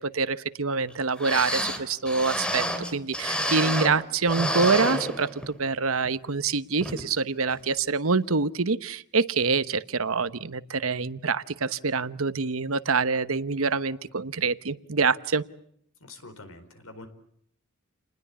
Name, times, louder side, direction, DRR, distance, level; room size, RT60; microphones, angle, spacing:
voice 1, 0.0-2.6 2.9-15.4, right 4 dB, 75° right, 14 dB, 1.0 m, -26 dB
sound 1, 0.9-1.0 1.2-4.0 4.3-5.6 6.0-6.1 6.8-7.0 7.5-7.6, equal, 5° left, 3.0 m, -29 dB
voice 2, 16.0-17.1, left 2 dB, 90° left, 9 dB, 4.4 m, -45 dB
29.5 x 20.5 x 8.3 m, 0.69 s
head